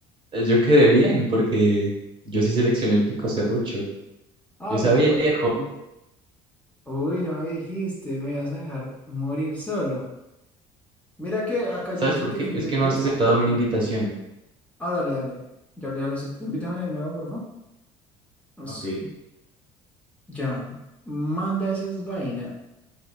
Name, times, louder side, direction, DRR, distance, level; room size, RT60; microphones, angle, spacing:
voice 1, 0.3-1.9 2.2-3.9 4.7-5.4 12.0-14.1 18.8-19.1, right 1 dB, 35° right, -3 dB, 0.9 m, -21 dB
voice 2, 4.6-5.7 6.9-10.1 11.2-13.0 14.8-15.4 15.8-17.4 18.6-18.8 20.3-20.8 21.1-22.5, equal, 10° left, -6 dB, 0.7 m, -29 dB
2.6 x 2.1 x 2.3 m, 0.89 s
supercardioid pair, 90°, 14 cm